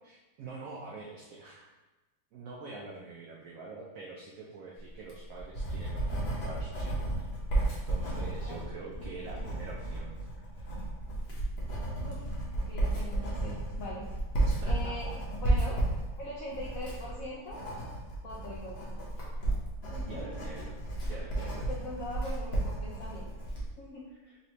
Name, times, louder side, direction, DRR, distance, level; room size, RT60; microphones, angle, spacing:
voice 1, 0.0-1.8 2.3-7.1 7.9-10.2 10.5-10.7 14.5-14.9 20.1-20.8 21.0-21.7 24.2-24.4, right 3 dB, 85° right, -2 dB, 0.7 m, -45 dB
Writing, 4.9-23.7, right 2 dB, 45° left, 0.9 m, -33 dB
voice 2, 9.0-9.5 12.0-14.1 14.7-15.1 15.4-15.8 16.2-17.9 18.2-18.9 19.9-20.3 21.7-23.3 23.8-24.1, left 1 dB, 75° left, -4 dB, 0.7 m, -42 dB
4.1 x 3.1 x 2.9 m, 1.1 s
omnidirectional pair, 2.0 m